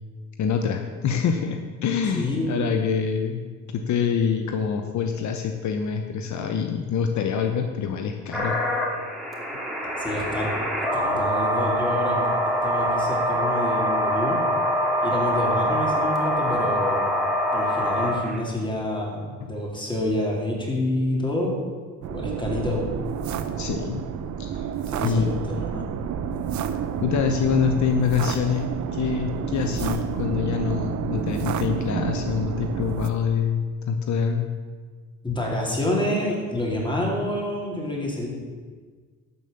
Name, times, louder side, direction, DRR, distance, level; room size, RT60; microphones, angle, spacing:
voice 1, 0.4-3.4 3.7-8.6 19.4-19.5 23.6-24.0 24.4-24.7 25.0-25.2 25.7-25.8 27.0-34.5, left 6 dB, 70° left, 5 dB, 1.0 m, -25 dB
voice 2, 2.1-2.7 10.0-10.5 10.9-12.3 12.6-14.4 15.0-17.1 17.5-21.5 22.1-22.9 24.9-25.9 35.2-38.3, left 1 dB, 15° left, -2 dB, 3.9 m, -28 dB
sound 1, 8.3-18.4, equal, ahead, 2.8 m, -24 dB
sound 2, 22.0-33.1, right 8 dB, 70° right, 0.9 m, -29 dB
12.0 x 7.0 x 7.0 m, 1.5 s
cardioid pair, 90°, 30 cm